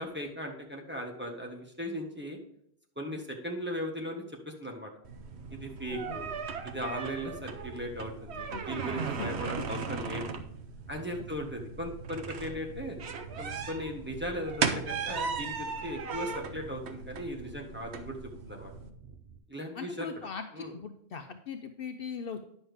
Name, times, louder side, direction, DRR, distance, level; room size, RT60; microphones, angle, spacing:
voice 1, 0.0-2.4 3.0-4.9 5.5-6.3 6.6-10.3 10.9-13.0 13.4-18.2 18.4-18.7 19.5-20.1 20.5-20.7, equal, 10° right, 0 dB, 1.4 m, -38 dB
sound 1, 5.0-18.9, right 5 dB, 85° right, 1.0 m, -37 dB
sound 2, 5.1-19.4, right 3 dB, 60° right, 1.1 m, -51 dB
voice 2, 19.8-22.4, left 6 dB, 65° left, 6 dB, 0.8 m, -39 dB
10.0 x 6.4 x 3.4 m, 0.70 s
omnidirectional pair, 1.1 m